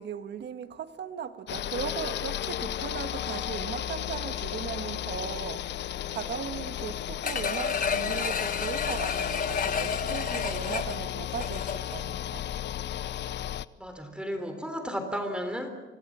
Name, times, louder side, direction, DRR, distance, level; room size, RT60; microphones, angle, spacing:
voice 1, 0.0-12.5, right 8 dB, 60° right, 1.5 m, -38 dB
sound 1, 1.5-13.6, left 11 dB, 60° left, 0.7 m, -34 dB
sound 2, 7.2-12.0 12.4-12.5, left 6 dB, 45° left, 1.3 m, -31 dB
voice 2, 13.8-15.7, equal, 5° right, 3.4 m, -33 dB
25.5 x 18.0 x 7.4 m
cardioid pair, 90°, 20 cm